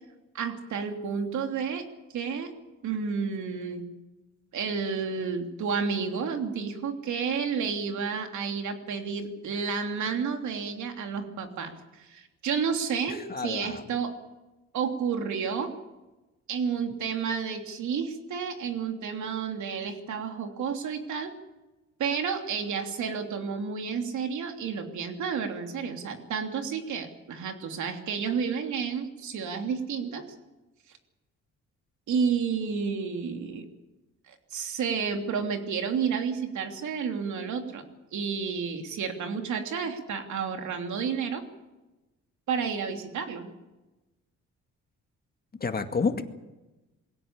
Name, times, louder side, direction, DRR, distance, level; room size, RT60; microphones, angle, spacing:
voice 1, 0.3-1.9 2.1-2.5 2.8-3.9 4.5-14.1 14.7-15.7 16.5-21.3 22.0-30.2 32.1-33.7 34.3-37.8 38.1-41.4 42.5-43.5, right 6 dB, 70° right, 4 dB, 3.2 m, -31 dB
voice 2, 13.1-13.8 45.6-46.2, left 4 dB, 30° left, 6 dB, 2.1 m, -29 dB
22.0 x 17.0 x 8.9 m, 1.1 s
cardioid pair, 90°, 30 cm